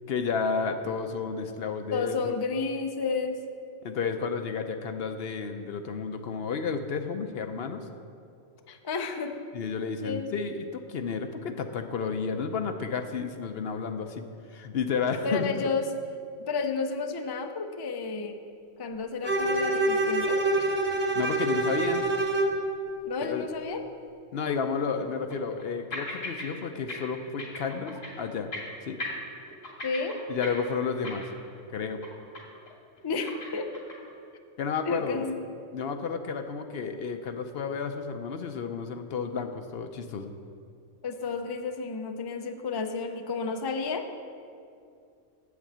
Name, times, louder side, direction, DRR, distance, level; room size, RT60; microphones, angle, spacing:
voice 1, 0.1-2.4 3.8-7.9 9.5-14.2 14.5-15.5 21.1-22.1 23.2-23.5 24.3-28.5 28.8-29.0 30.3-31.3 31.7-32.0 34.6-35.2 35.7-40.3, left 5 dB, 60° left, 7 dB, 0.8 m, -31 dB
voice 2, 1.9-3.4 8.7-9.4 10.0-10.3 15.2-15.9 16.4-18.4 18.8-20.4 23.0-23.9 29.8-30.2 33.0-33.7 34.9-35.4 41.0-44.1, left 4 dB, 40° left, 6 dB, 0.3 m, -31 dB
Bowed string instrument, 19.2-22.6, right 2 dB, 60° right, 1.3 m, -26 dB
sound 1, 19.7-19.9 20.2-20.3 20.9-21.0 24.2-24.3 25.0-25.7 25.9-26.5 26.7-27.0 27.2-28.2 28.5-28.7 29.0-31.6 31.9-32.1 32.4-32.7 32.9-34.1, left 2 dB, 90° left, 2.7 m, -38 dB
8.3 x 7.6 x 7.3 m, 2.4 s
omnidirectional pair, 1.3 m